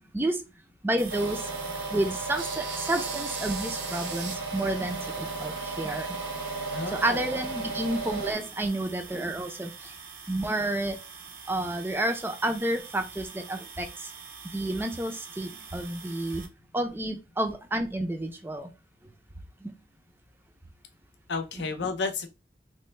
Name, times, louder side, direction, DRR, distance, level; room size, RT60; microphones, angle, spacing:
voice 1, 0.8-1.5 1.9-6.2 6.9-9.9 10.3-11.0 11.5-14.1 14.5-16.5 16.7-18.7 19.6-19.7, right 1 dB, 10° right, 0.4 m, -30 dB
sound 1, 1.0-16.5, right 6 dB, 55° right, 0.6 m, -45 dB
sound 2, 1.1-8.3, right 3 dB, 70° right, 1.0 m, -34 dB
voice 2, 6.7-7.2 21.3-22.3, left 4 dB, 80° left, 0.6 m, -32 dB
3.1 x 2.1 x 3.1 m
head